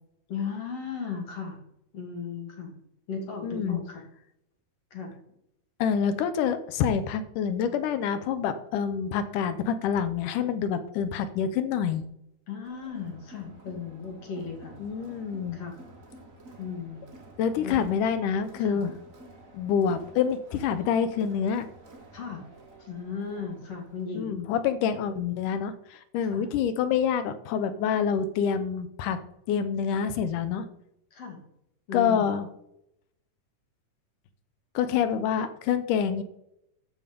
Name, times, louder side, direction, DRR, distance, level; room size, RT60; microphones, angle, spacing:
voice 1, 0.3-1.6 1.9-2.8 3.1-4.0 4.9-5.1 12.5-14.8 15.5-15.8 16.6-17.0 17.6-17.7 18.6-18.8 22.1-22.5 22.8-24.4 26.2-26.5 31.1-31.5 31.9-32.3, left 5 dB, 55° left, 2 dB, 2.9 m, -36 dB
voice 2, 3.4-3.8 5.8-12.0 14.8-15.6 17.4-18.9 19.5-21.7 24.1-29.2 29.5-30.7 31.9-32.5 34.8-36.2, left 7 dB, 80° left, 11 dB, 2.3 m, -27 dB
Crowd, 12.6-24.2, right 2 dB, 35° right, 1.5 m, -51 dB
13.5 x 5.5 x 5.1 m, 0.78 s
omnidirectional pair, 3.6 m